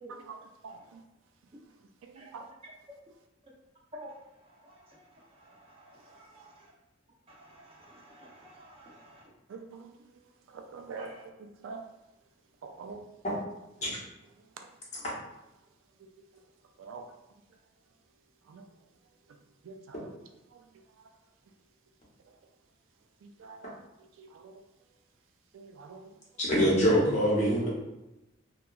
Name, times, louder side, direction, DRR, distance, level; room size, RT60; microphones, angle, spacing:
voice 1, 0.6-1.0 2.0-2.5 9.5-10.0 10.5-11.9 12.6-13.0 13.8-13.9 16.8-17.0 18.5-18.6 19.6-20.1 20.5-20.6 23.2-23.7 24.2-24.6 25.5-26.1, right 4 dB, 80° right, 5 dB, 0.3 m, -45 dB
voice 2, 3.9-6.7 7.3-9.2 11.0-11.3, right 1 dB, 30° right, -3 dB, 0.5 m, -51 dB
voice 3, 26.4-27.7, equal, 35° left, -6 dB, 0.8 m, -24 dB
2.8 x 2.2 x 2.3 m, 0.94 s
head